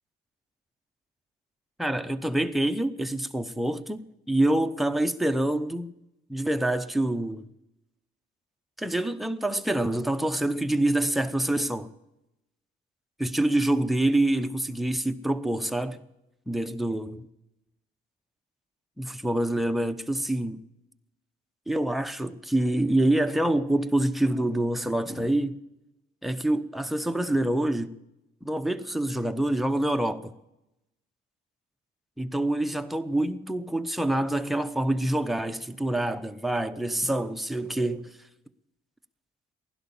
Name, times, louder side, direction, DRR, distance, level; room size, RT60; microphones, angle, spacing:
voice 1, 1.8-5.9 6.3-7.4 8.8-11.9 13.2-16.0 16.5-17.3 19.0-20.6 21.7-25.6 26.2-28.0 28.4-30.3 32.2-38.1, right 1 dB, ahead, 0.8 m, -26 dB
16.5 x 11.5 x 7.1 m
cardioid pair, 90°, 20 cm